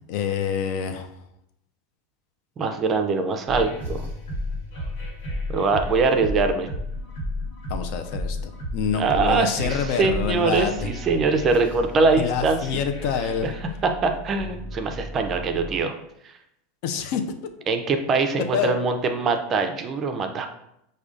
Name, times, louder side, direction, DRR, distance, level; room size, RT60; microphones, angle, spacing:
voice 1, 0.1-1.1 7.7-10.9 12.1-13.5 16.8-17.2 18.5-18.7, left 7 dB, 60° left, 7 dB, 0.4 m, -27 dB
voice 2, 2.6-4.1 5.5-6.7 8.9-12.6 13.4-13.5 13.8-15.9 17.7-20.5, right 4 dB, 30° right, 6 dB, 0.4 m, -23 dB
sound 1, 3.5-15.8, left 1 dB, 85° left, 1.2 m, -33 dB
4.9 x 2.2 x 2.4 m, 0.80 s
supercardioid pair, 130°, 0 cm